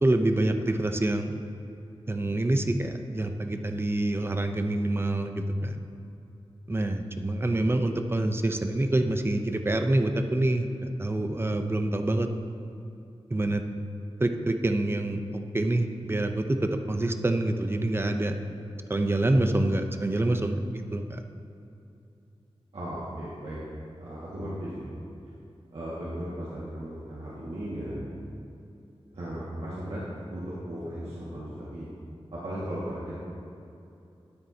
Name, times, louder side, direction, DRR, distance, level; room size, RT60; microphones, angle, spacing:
voice 1, 0.0-1.4 2.1-5.8 6.7-12.3 13.3-13.6 14.2-18.4 18.9-21.2, right 1 dB, 25° right, 6 dB, 0.6 m, -26 dB
voice 2, 22.7-23.6 24.0-24.9 25.7-28.1 29.1-30.0 30.3-31.8 32.4-33.2, right 1 dB, 80° right, -9 dB, 1.8 m, -36 dB
12.5 x 9.4 x 2.8 m, 2.8 s
wide cardioid pair, 85°, 10 cm